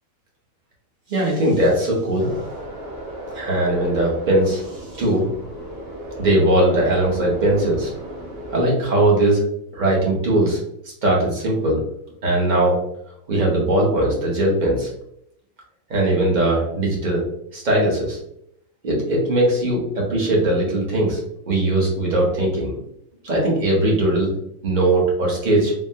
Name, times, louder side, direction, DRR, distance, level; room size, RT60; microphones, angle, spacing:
voice 1, 1.1-2.3 3.3-4.7 5.0-5.3 6.2-7.9 8.5-9.5 9.7-10.6 11.0-11.8 12.2-12.8 13.3-14.9 15.9-17.2 17.5-18.2 18.8-21.2 21.5-22.8 23.2-24.3 24.6-25.7, right 1 dB, 40° right, -3 dB, 0.9 m, -19 dB
sound 1, 2.2-8.7, right 1 dB, 80° right, 1.1 m, -35 dB
3.5 x 2.1 x 2.7 m, 0.74 s
omnidirectional pair, 1.4 m